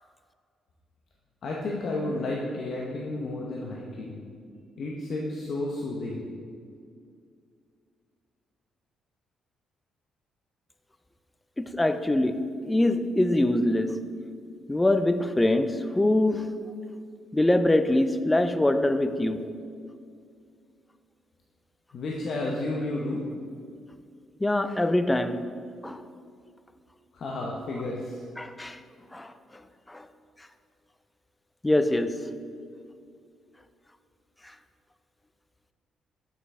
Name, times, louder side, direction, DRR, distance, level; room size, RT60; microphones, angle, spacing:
voice 1, 1.4-4.2 4.8-6.2 21.9-23.2 27.1-28.2, left 2 dB, 60° left, -2 dB, 0.8 m, -32 dB
voice 2, 11.6-14.0 14.7-16.5 17.3-19.4 24.4-25.4 25.8-26.0 28.4-28.8 29.1-29.3 29.9-30.1 31.6-32.2, left 1 dB, 15° left, 10 dB, 0.4 m, -24 dB
7.3 x 6.1 x 3.3 m, 2.3 s
cardioid pair, 90°, 0 cm